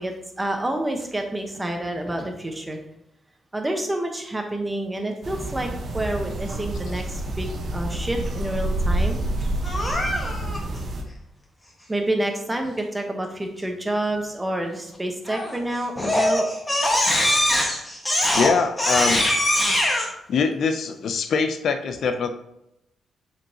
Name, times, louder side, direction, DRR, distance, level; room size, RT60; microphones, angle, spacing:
voice 1, 0.0-2.8 3.5-9.2 11.9-16.5, right 1 dB, 15° right, 4 dB, 1.1 m, -28 dB
sound 1, 5.2-11.0, right 1 dB, 50° right, 1.1 m, -28 dB
Crying sobbing, 9.6-10.6 15.3-15.6 16.0-20.1, left 1 dB, 15° left, 1.6 m, -22 dB
voice 2, 18.3-19.2 20.3-22.3, left 5 dB, 65° left, 8 dB, 0.6 m, -23 dB
7.2 x 5.3 x 2.9 m, 0.85 s
cardioid pair, 105°, 0 cm